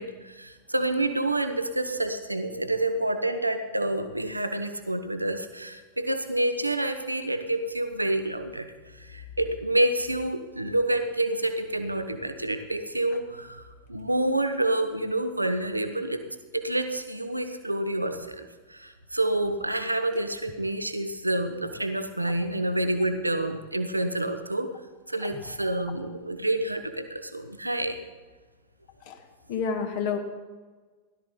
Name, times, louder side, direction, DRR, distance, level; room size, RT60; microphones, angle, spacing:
voice 1, 0.0-13.6 13.9-16.2 16.5-24.7 25.1-28.0, right 1 dB, 85° right, 9 dB, 1.0 m, -28 dB
voice 2, 29.5-30.2, left 6 dB, 50° left, 4 dB, 1.7 m, -29 dB
17.0 x 12.5 x 3.8 m, 1.3 s
figure-of-eight pair, 90°, 0 cm